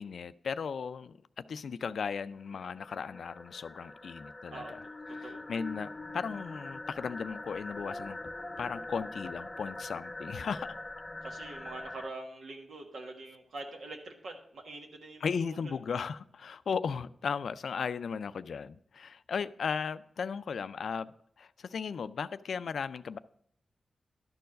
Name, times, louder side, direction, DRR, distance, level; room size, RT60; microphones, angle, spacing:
voice 1, 0.0-4.8 5.1-8.2 8.6-10.8 15.2-21.1 21.4-23.2, left 6 dB, 80° left, 0.3 m, -36 dB
sound 1, 2.4-12.1, left 2 dB, 30° left, 0.7 m, -43 dB
voice 2, 11.2-15.8, right 2 dB, 80° right, 1.4 m, -44 dB
11.5 x 4.6 x 6.3 m
cardioid pair, 50°, 0 cm